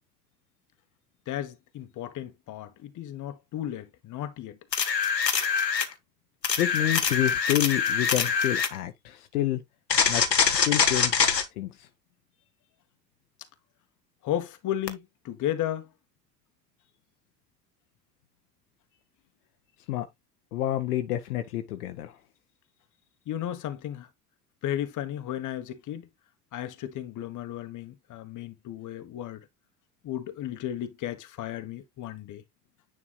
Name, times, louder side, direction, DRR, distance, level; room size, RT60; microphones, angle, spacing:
voice 1, 1.3-4.6 14.2-15.9 23.3-24.1 24.6-26.1 26.5-29.4 30.0-32.4, left 11 dB, 40° left, 1.4 m, -34 dB
sound 1, 4.7-5.9 6.4-8.8 9.9-11.5 14.9-15.0, left 6 dB, 85° left, 1.0 m, -24 dB
voice 2, 6.6-9.6 10.1-10.2 10.6-11.3 11.6-11.9 19.9-20.1 20.5-22.1, left 13 dB, 65° left, 1.0 m, -28 dB
9.7 x 4.8 x 2.4 m
figure-of-eight pair, 65°, 49 cm